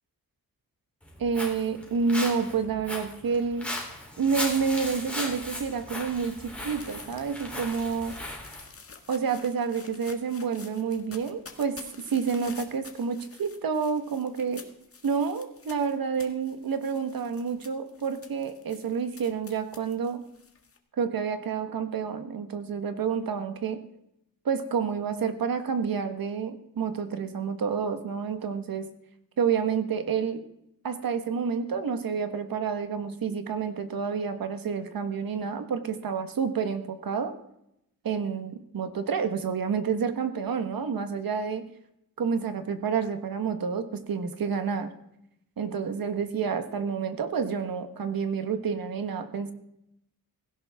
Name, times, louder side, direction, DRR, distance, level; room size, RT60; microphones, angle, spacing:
Walk footsteps, 1.0-8.7, left 1 dB, 5° left, 3.6 m, -37 dB
voice 1, 1.2-3.7 4.2-8.1 9.1-11.7 12.1-14.6 15.0-20.2 21.0-23.8 24.4-28.9 29.4-30.4 30.8-37.3 38.0-41.6 42.2-44.9 45.6-49.5, right 6 dB, 70° right, 8 dB, 1.5 m, -29 dB
sound 1, 5.7-20.8, left 5 dB, 40° left, 1.6 m, -50 dB
17.0 x 16.5 x 3.6 m, 0.81 s
wide cardioid pair, 165°, 36 cm